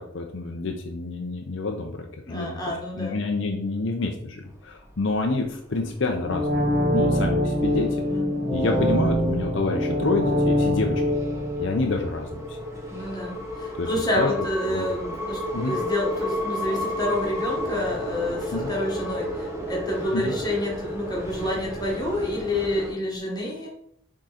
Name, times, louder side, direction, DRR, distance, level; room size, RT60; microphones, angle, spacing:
voice 1, 0.0-2.6 3.0-6.5 6.9-8.0 8.5-11.0 11.6-12.6 13.7-13.9 14.2-14.3 14.7-14.8 15.5-15.7 18.5-18.7 20.1-20.3, left 3 dB, 55° left, 3 dB, 0.6 m, -28 dB
voice 2, 2.3-3.2 7.8-8.8 12.9-23.7, left 1 dB, 20° left, -2 dB, 1.6 m, -29 dB
sound 1, 4.7-5.5 5.8-6.0 6.4-6.8 7.4-7.7 8.2-22.9, left 1 dB, 15° right, 0.9 m, -33 dB
sound 2, 6.2-13.0 13.3-13.4, left 1 dB, 45° right, 1.5 m, -24 dB
6.3 x 3.7 x 4.2 m, 0.68 s
head